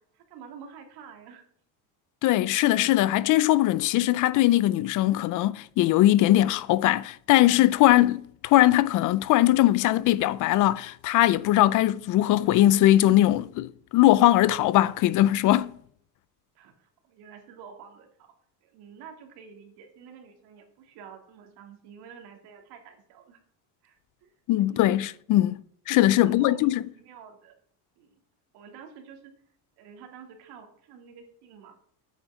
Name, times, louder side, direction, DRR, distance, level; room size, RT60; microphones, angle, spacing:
voice 1, 0.1-1.4 16.5-18.3 18.6-23.4 23.8-24.3 24.6-24.8 26.2-27.6 28.0-28.2 28.5-29.3 29.8-31.8, right 7 dB, 70° right, 3.0 m, -48 dB
voice 2, 2.2-15.7 24.5-25.6 25.9-26.8, left 15 dB, 50° left, 0.5 m, -21 dB
9.2 x 8.3 x 5.9 m
cardioid pair, 170°, 40 cm